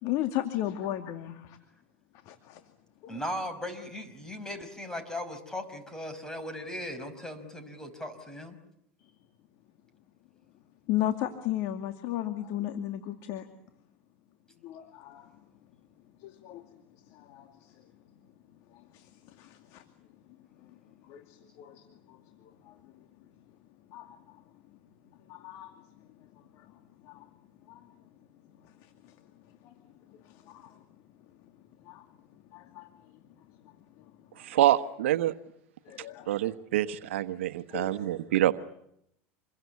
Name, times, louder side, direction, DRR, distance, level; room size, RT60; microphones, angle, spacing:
voice 1, 0.0-1.6 2.3-2.6 3.0-3.2 9.0-9.1 10.9-13.5 14.6-15.3 16.2-16.6 17.1-17.7 18.7-19.8 20.6-20.7 21.0-23.1 23.9-24.4 25.3-25.7 26.2-26.7 27.0-27.3 27.7-27.9 28.6-29.1 29.6-29.7 30.1-30.8 31.8-32.1 32.5-32.9 33.6-34.1 35.8-36.5 36.8-36.9 37.7-38.2 38.5-38.6, left 13 dB, 60° left, 2.4 m, -36 dB
voice 2, 3.1-8.6, left 1 dB, 10° left, 5.4 m, -38 dB
voice 3, 34.4-35.3 36.3-38.5, right 13 dB, 90° right, 1.2 m, -26 dB
28.0 x 22.5 x 8.4 m
supercardioid pair, 120°, 7 cm